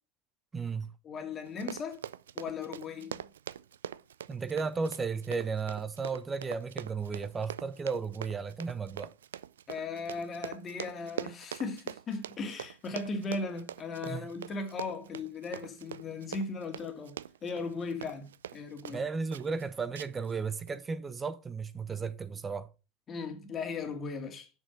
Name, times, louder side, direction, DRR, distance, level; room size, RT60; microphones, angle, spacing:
voice 1, 0.5-0.9 4.3-9.1 14.1-14.3 18.9-22.7, right 5 dB, 20° right, 0.9 m, -34 dB
voice 2, 1.0-2.0 2.3-3.3 9.7-19.1 23.1-24.5, left 4 dB, 35° left, 2.3 m, -37 dB
Run, 1.4-19.0 19.3-19.6 19.9-20.3 20.7-20.8, right 10 dB, 85° right, 0.3 m, -43 dB
6.8 x 6.1 x 5.0 m
hypercardioid pair, 90°, 0 cm